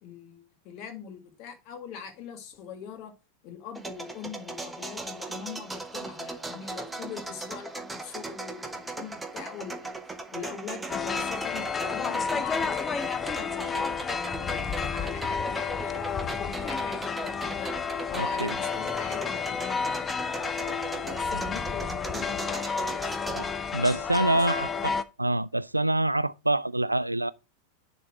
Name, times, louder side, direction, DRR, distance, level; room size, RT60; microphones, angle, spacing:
voice 1, 0.0-3.1 3.4-13.9 14.4-17.7 18.1-20.3 21.0-24.9, left 7 dB, 40° left, 2.0 m, -42 dB
sound 1, 3.8-23.5, right 3 dB, 10° right, 1.0 m, -39 dB
sound 2, 10.9-25.0, left 5 dB, 20° left, 0.6 m, -31 dB
voice 2, 18.2-18.5 23.3-24.9 25.2-27.3, right 1 dB, 85° right, 0.4 m, -26 dB
10.0 x 4.1 x 4.6 m
figure-of-eight pair, 90°, 0 cm